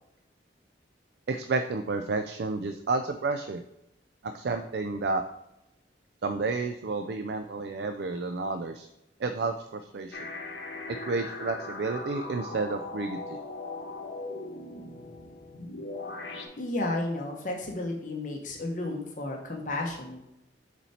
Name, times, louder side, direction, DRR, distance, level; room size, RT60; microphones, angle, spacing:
voice 1, 1.3-3.6 4.2-5.2 6.2-8.9 9.2-10.2 11.0-13.4, right 3 dB, 60° right, 8 dB, 0.4 m, -31 dB
sound 1, 10.1-16.5, left 2 dB, 65° left, 1.1 m, -39 dB
voice 2, 16.6-20.2, left 2 dB, 45° left, 0 dB, 1.0 m, -32 dB
7.0 x 4.3 x 4.3 m, 0.85 s
head